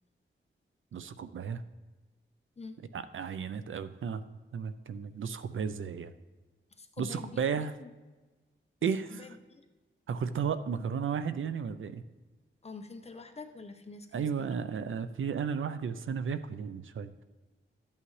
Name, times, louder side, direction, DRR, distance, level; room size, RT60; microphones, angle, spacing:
voice 1, 0.9-1.6 2.9-4.2 4.5-6.1 7.0-7.7 8.8-9.3 10.1-12.0 14.1-17.2, right 6 dB, 75° right, 12 dB, 0.5 m, -34 dB
voice 2, 6.7-7.9 9.1-9.6 12.6-14.1 14.4-14.5, left 4 dB, 30° left, 6 dB, 0.8 m, -46 dB
13.0 x 8.5 x 3.2 m, 1.2 s
wide cardioid pair, 150°, 20 cm